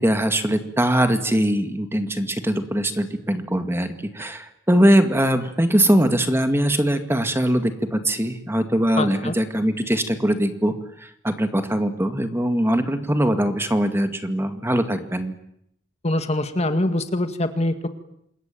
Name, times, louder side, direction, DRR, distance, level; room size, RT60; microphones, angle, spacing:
voice 1, 0.0-15.4, right 1 dB, 10° right, 7 dB, 2.1 m, -21 dB
voice 2, 9.0-9.4 16.0-17.9, left 1 dB, 35° left, 8 dB, 1.9 m, -24 dB
27.5 x 22.0 x 9.2 m, 0.75 s
head